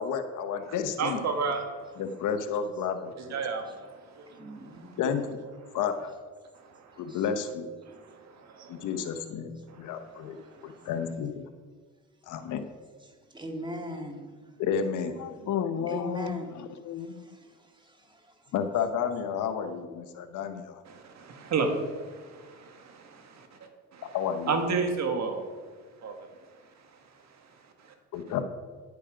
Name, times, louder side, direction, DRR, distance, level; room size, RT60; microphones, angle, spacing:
voice 1, 0.0-1.2 2.0-3.1 5.0-5.4 5.7-6.1 7.0-7.7 8.7-10.4 10.6-11.4 12.3-12.6 14.6-15.2 18.5-20.8 24.1-24.5 28.1-28.4, left 7 dB, 85° left, 1.1 m, -31 dB
voice 2, 0.6-2.2 3.2-5.0 5.6-5.8 6.5-7.5 7.8-9.2 9.7-10.9 20.8-28.4, right 4 dB, 60° right, 1.9 m, -35 dB
voice 3, 4.4-5.1 7.1-7.3 10.5-10.6 13.0-14.6 15.9-16.6 17.0-17.9 18.5-18.6, right 1 dB, 15° right, 2.1 m, -40 dB
voice 4, 15.2-17.3, left 9 dB, 70° left, 0.8 m, -33 dB
10.5 x 8.3 x 5.1 m
cardioid pair, 90°, 30 cm